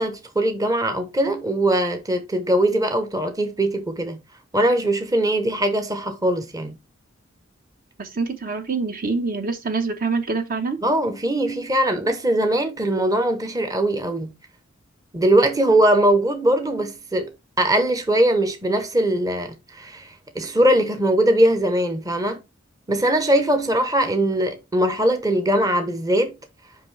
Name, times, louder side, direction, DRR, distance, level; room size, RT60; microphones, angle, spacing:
voice 1, 0.0-4.2 4.5-6.8 10.8-14.4 15.1-22.4 22.9-26.3, right 1 dB, 20° right, 0.8 m, -21 dB
voice 2, 8.0-10.8, right 4 dB, 45° right, 0.9 m, -25 dB
5.9 x 5.1 x 3.2 m
head